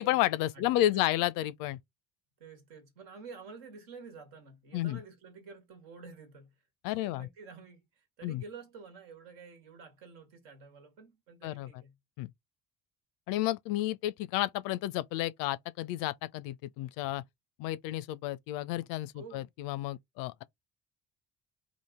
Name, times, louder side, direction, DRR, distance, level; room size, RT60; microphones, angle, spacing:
voice 1, 0.0-1.8 4.7-5.0 6.8-7.3 8.2-8.4 11.4-11.7 12.2-12.3 13.3-17.2 17.6-20.4, left 15 dB, 55° left, 0.5 m, -31 dB
voice 2, 0.5-1.1 2.4-6.6 6.8-12.0 19.1-19.4, right 4 dB, 65° right, 1.5 m, -50 dB
2.9 x 2.5 x 3.5 m
figure-of-eight pair, 50°, 41 cm